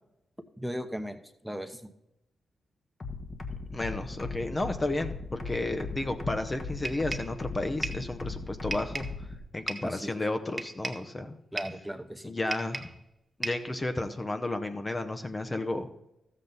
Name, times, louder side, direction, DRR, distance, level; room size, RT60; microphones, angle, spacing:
voice 1, 0.6-1.2 1.4-1.9 9.8-10.2 11.5-12.3, equal, 5° right, 7 dB, 1.0 m, -37 dB
sound 1, 3.0-9.4, left 3 dB, 45° left, 1.5 m, -38 dB
voice 2, 3.7-9.3 9.5-11.4 12.2-12.9 13.4-15.9, left 2 dB, 30° left, 7 dB, 0.9 m, -32 dB
sound 2, 6.8-7.4 7.8-8.1 8.7-9.2 9.7-10.0 10.6-11.1 11.6-11.8 12.5-13.0 13.4-13.7, right 2 dB, 25° right, 1.1 m, -36 dB
13.0 x 7.5 x 4.0 m, 0.87 s
supercardioid pair, 50°, 0 cm